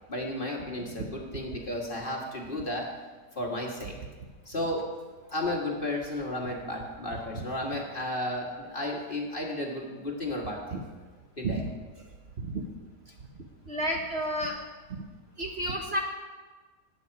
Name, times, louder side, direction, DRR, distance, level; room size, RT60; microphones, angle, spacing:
voice 1, 0.1-2.9 3.4-3.9 4.5-4.9 5.3-10.8 11.4-11.6, left 1 dB, 30° left, -1 dB, 2.0 m, -33 dB
voice 2, 7.1-7.4 10.7-10.8 11.4-11.6 12.4-12.6 13.7-14.6 14.9-15.0 15.4-16.0, right 1 dB, 40° right, 0 dB, 1.3 m, -31 dB
18.5 x 8.8 x 4.8 m, 1.4 s
omnidirectional pair, 1.9 m